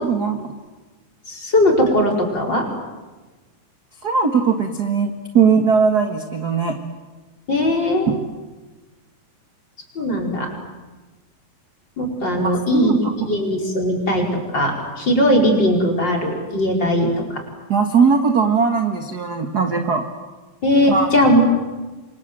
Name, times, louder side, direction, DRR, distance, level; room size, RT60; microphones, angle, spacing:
voice 1, 0.0-0.4 4.0-6.8 8.1-8.2 12.4-13.1 17.7-20.0 20.9-21.1, right 5 dB, 40° right, 5 dB, 1.4 m, -19 dB
voice 2, 1.3-2.7 7.5-8.1 10.0-10.5 12.0-14.3 14.5-17.1 20.6-21.4, equal, 30° left, 0 dB, 5.5 m, -19 dB
28.5 x 25.0 x 7.7 m, 1.2 s
omnidirectional pair, 4.0 m